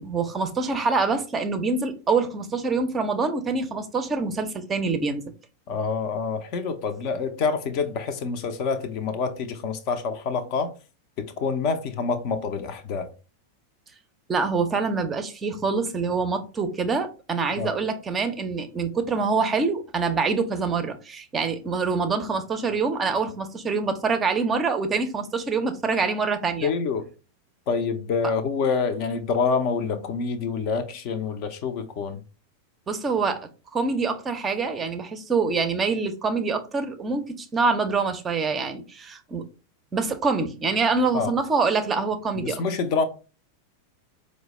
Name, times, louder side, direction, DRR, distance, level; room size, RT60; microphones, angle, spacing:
voice 1, 0.0-5.2 14.3-26.7 32.9-33.4 33.7-39.5 39.9-42.6, right 4 dB, 20° right, 0.5 m, -25 dB
voice 2, 5.7-10.7 11.2-13.1 17.6-17.7 26.6-27.1 27.7-32.2 41.1-41.3 42.4-43.0, left 5 dB, 45° left, 0.5 m, -27 dB
4.6 x 2.1 x 3.0 m
figure-of-eight pair, 90°, 0 cm